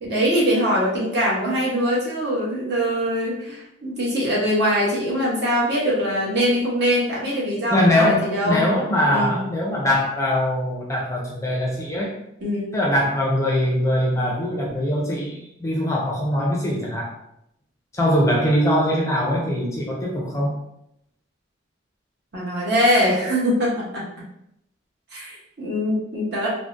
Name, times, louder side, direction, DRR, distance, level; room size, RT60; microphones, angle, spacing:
voice 1, 0.0-8.6 9.0-9.3 12.4-12.7 22.3-24.1 25.1-26.5, equal, 60° right, -5 dB, 1.0 m, -22 dB
voice 2, 7.7-12.1 12.7-17.1 17.9-20.6, left 1 dB, 15° left, -2 dB, 0.4 m, -22 dB
3.5 x 2.1 x 2.5 m, 0.79 s
head